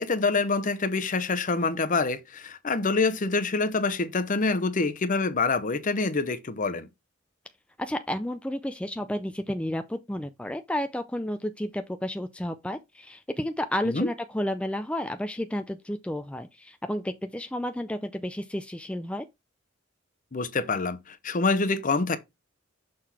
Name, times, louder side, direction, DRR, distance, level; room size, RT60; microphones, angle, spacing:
voice 1, 0.0-6.9 13.8-14.1 20.3-22.2, left 3 dB, 45° left, 0.8 m, -26 dB
voice 2, 7.8-19.3, left 1 dB, 5° left, 0.4 m, -31 dB
6.5 x 4.0 x 4.2 m
head